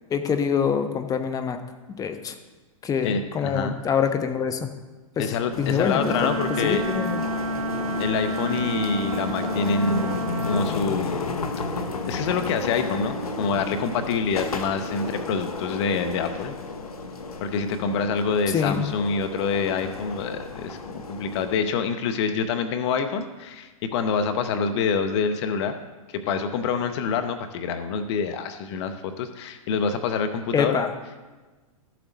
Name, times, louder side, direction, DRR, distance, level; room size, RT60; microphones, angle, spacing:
voice 1, 0.1-1.6 1.9-2.3 2.8-4.7 5.2-5.3 5.6-7.2 18.5-18.9 30.5-30.9, left 7 dB, 20° left, 8 dB, 1.0 m, -25 dB
voice 2, 3.0-3.7 5.2-6.8 8.0-11.4 11.8-16.5 17.4-25.8 26.1-30.8, left 5 dB, 50° left, 8 dB, 1.0 m, -26 dB
sound 1, 5.5-21.6, left 3 dB, 85° left, 1.1 m, -32 dB
Wind instrument woodwind instrument, 5.9-10.7, right 1 dB, 70° right, 3.1 m, -30 dB
13.0 x 7.6 x 4.1 m, 1.3 s
hypercardioid pair, 115°, 18 cm